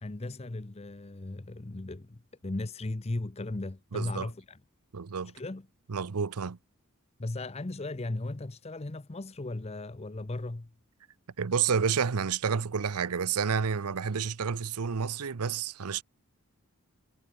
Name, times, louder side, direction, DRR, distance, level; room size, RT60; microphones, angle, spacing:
voice 1, 0.0-4.6 5.3-5.7 7.2-10.7, left 2 dB, 30° left, 0.7 m, -37 dB
voice 2, 3.9-4.3 4.9-5.3 5.9-6.6 11.4-16.0, right 6 dB, 85° right, 0.7 m, -30 dB
head